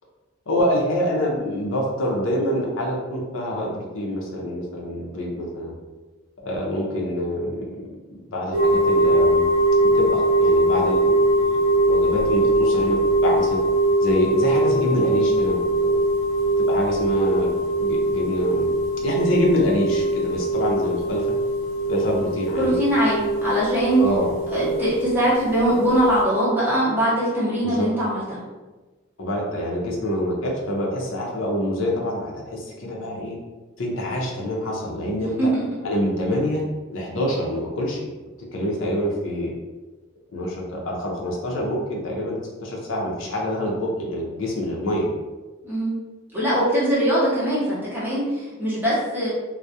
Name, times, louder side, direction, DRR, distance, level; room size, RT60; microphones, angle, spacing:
voice 1, 0.5-5.8 6.4-7.8 8.1-9.5 9.8-13.6 14.0-16.0 16.6-18.7 19.0-21.2 21.9-22.7 24.0-24.3 27.6-27.9 29.2-33.4 33.8-35.5 35.8-36.6 36.9-38.1 38.5-39.5 40.3-45.1, equal, 80° left, -2 dB, 0.6 m, -26 dB
sound 1, 8.5-26.2, right 1 dB, 75° right, 0.4 m, -21 dB
voice 2, 22.6-24.0 24.5-28.4 35.2-35.6 45.6-46.0 46.3-49.3, right 1 dB, 10° right, -9 dB, 0.7 m, -22 dB
2.3 x 2.0 x 2.7 m, 1.2 s
head